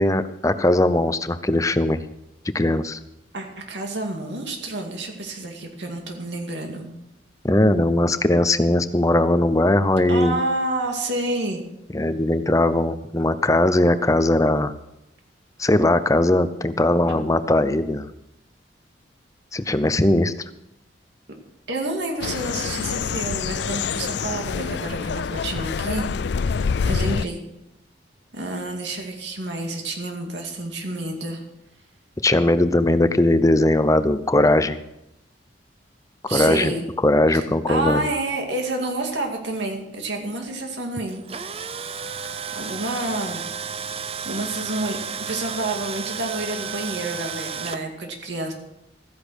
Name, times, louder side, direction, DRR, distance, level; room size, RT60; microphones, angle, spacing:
voice 1, 0.0-2.0 2.5-3.0 7.4-10.4 11.9-14.7 15.6-18.1 19.5-20.3 32.2-34.8 36.2-36.7 37.0-38.1, left 1 dB, 15° left, 12 dB, 0.7 m, -19 dB
voice 2, 3.3-6.9 10.1-11.6 21.7-26.1 26.4-27.4 28.3-31.4 36.3-36.9 37.3-41.2 42.5-43.4 44.2-48.5, right 2 dB, 70° right, 2 dB, 2.3 m, -29 dB
sound 1, 22.2-27.3, left 6 dB, 65° left, 0.4 m, -26 dB
Tools, 41.1-47.8, right 6 dB, 30° right, 0.6 m, -32 dB
14.5 x 10.5 x 6.4 m, 0.87 s
head